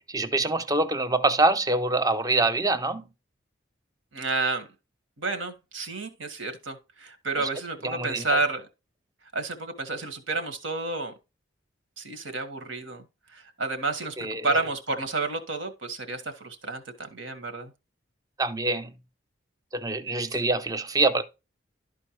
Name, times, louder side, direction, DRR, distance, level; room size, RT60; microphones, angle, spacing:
voice 1, 0.1-3.0 7.4-7.5 7.8-8.4 14.2-14.5 18.4-18.9 19.7-21.2, right 2 dB, 20° right, 0.6 m, -25 dB
voice 2, 4.1-4.7 5.2-8.7 9.3-11.1 12.0-17.7 20.3-20.4, right 3 dB, 75° right, 1.6 m, -30 dB
12.5 x 4.5 x 3.1 m
head